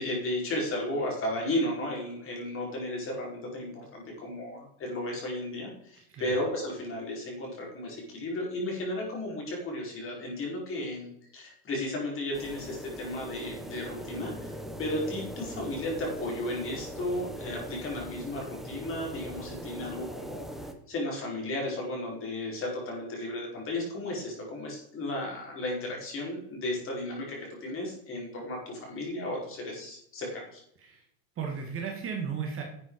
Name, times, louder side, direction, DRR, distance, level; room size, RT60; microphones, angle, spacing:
voice 1, 0.0-30.6, left 1 dB, 25° left, -1 dB, 4.9 m, -34 dB
sound 1, 12.3-20.7, right 1 dB, ahead, 0.8 m, -40 dB
voice 2, 31.4-32.6, right 6 dB, 25° right, 1 dB, 2.2 m, -35 dB
11.5 x 8.3 x 4.9 m, 0.71 s
supercardioid pair, 150°, 49 cm